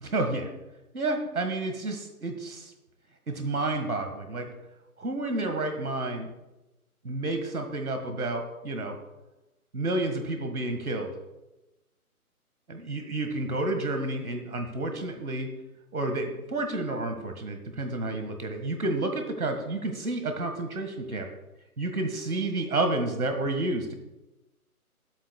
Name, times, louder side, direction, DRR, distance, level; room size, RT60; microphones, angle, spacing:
voice 1, 0.0-0.5 0.9-2.7 3.3-4.5 5.0-6.3 7.0-9.0 9.7-11.1 12.7-15.5 15.9-21.3 21.8-23.9, right 2 dB, 70° right, 5 dB, 1.7 m, -30 dB
14.0 x 13.0 x 2.3 m, 1.0 s
figure-of-eight pair, 140°, 44 cm